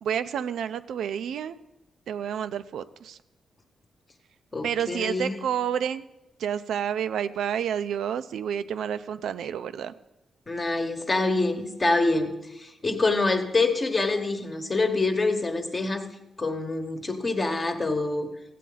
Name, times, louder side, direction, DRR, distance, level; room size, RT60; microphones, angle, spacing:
voice 1, 0.0-1.6 2.1-3.2 4.6-6.0 6.4-9.9, right 8 dB, 90° right, 11 dB, 0.4 m, -29 dB
voice 2, 4.5-5.4 10.5-16.1 16.4-18.3, left 3 dB, 25° left, 6 dB, 1.1 m, -26 dB
15.0 x 8.3 x 3.9 m, 0.92 s
cardioid pair, 125°, 0 cm